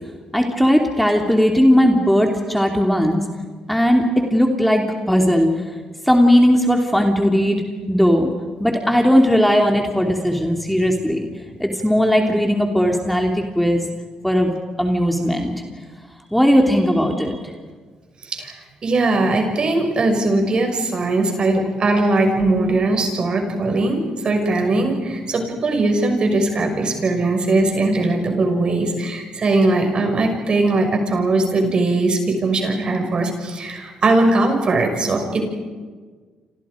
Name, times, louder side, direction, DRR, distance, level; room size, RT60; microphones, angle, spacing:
voice 1, 0.3-3.2 3.7-5.5 6.0-8.3 8.6-11.3 11.6-13.8 14.2-14.5 14.8-15.6 16.3-17.4, equal, ahead, 2 dB, 3.0 m, -17 dB
voice 2, 18.2-35.4, right 2 dB, 45° right, 4 dB, 6.3 m, -20 dB
29.5 x 26.5 x 5.2 m, 1.5 s
cardioid pair, 80°, 2 cm